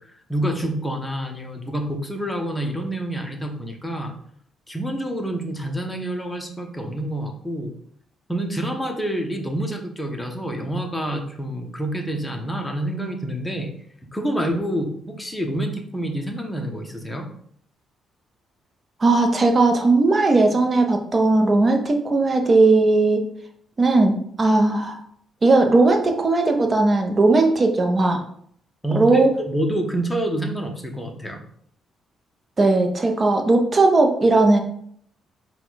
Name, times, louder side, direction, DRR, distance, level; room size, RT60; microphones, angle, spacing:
voice 1, 0.0-4.1 4.7-7.7 8.3-13.7 14.1-17.3 28.8-31.4, right 1 dB, 10° left, 2 dB, 0.8 m, -27 dB
voice 2, 19.0-23.2 23.8-25.0 25.4-28.2 28.9-29.3 32.6-34.6, right 2 dB, 35° right, 4 dB, 0.7 m, -17 dB
4.3 x 2.3 x 4.0 m, 0.64 s
cardioid pair, 90°, 0 cm